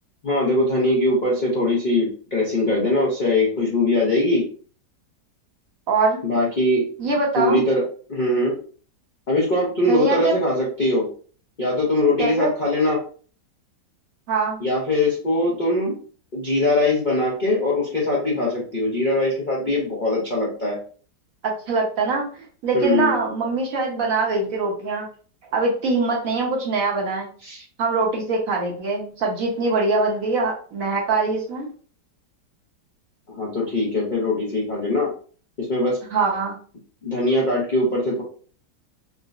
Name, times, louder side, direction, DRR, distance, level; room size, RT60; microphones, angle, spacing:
voice 1, 0.2-4.4 6.2-6.8 7.4-7.8 8.1-8.5 9.3-11.1 11.6-13.0 14.6-15.9 16.3-20.8 22.7-23.1 27.4-27.6 33.3-35.1 35.6-36.0 37.0-38.2, left 1 dB, 65° left, -5 dB, 0.4 m, -21 dB
voice 2, 5.9-6.2 7.0-7.6 9.9-10.3 12.2-12.5 14.3-14.6 21.4-22.2 22.6-25.1 25.5-27.3 27.8-31.7 36.1-36.5, right 3 dB, 60° right, -1 dB, 1.0 m, -23 dB
3.7 x 2.0 x 2.4 m, 0.42 s
omnidirectional pair, 1.9 m